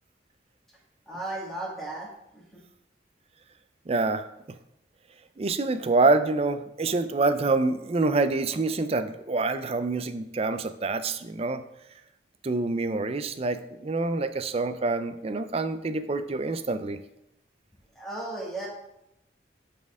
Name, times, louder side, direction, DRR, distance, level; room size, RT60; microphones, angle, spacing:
voice 1, 1.1-2.6 18.0-18.7, right 2 dB, ahead, -5 dB, 2.1 m, -35 dB
voice 2, 3.9-4.3 5.4-11.6 12.4-17.0, right 3 dB, 35° right, 11 dB, 0.4 m, -26 dB
10.5 x 4.3 x 3.6 m, 0.84 s
head